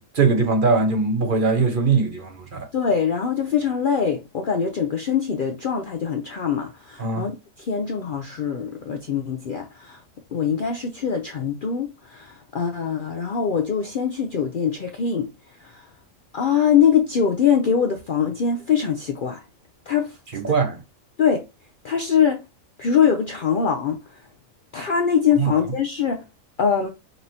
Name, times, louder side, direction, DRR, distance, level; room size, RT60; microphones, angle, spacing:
voice 1, 0.0-2.7 7.0-7.3 20.3-20.8 25.4-25.6, right 4 dB, 45° right, 0.9 m, -21 dB
voice 2, 2.7-7.3 7.6-10.0 10.3-15.3 15.7-15.8 16.3-19.4 19.9-20.2 21.2-21.4 21.8-22.4 22.8-24.0 24.7-26.2 26.6-26.9, left 7 dB, 60° left, 0.5 m, -23 dB
5.3 x 3.0 x 2.7 m
omnidirectional pair, 1.4 m